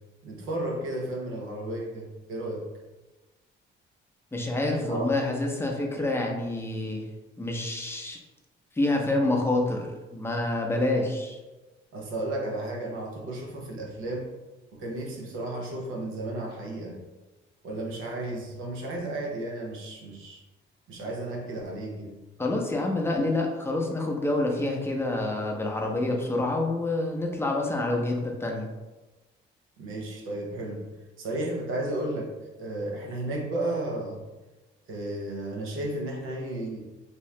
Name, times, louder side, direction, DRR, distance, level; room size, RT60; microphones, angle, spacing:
voice 1, 0.2-2.7 4.8-5.1 11.9-14.3 14.7-17.0 17.6-20.4 20.9-22.2 29.8-30.9 31.2-32.3 32.6-34.2 34.9-36.8, right 1 dB, 85° right, 0 dB, 0.7 m, -33 dB
voice 2, 4.3-7.0 7.4-8.2 8.8-11.4 22.4-28.7, left 2 dB, 10° left, 0 dB, 0.6 m, -27 dB
2.8 x 2.3 x 3.1 m, 1.1 s
cardioid pair, 90°, 20 cm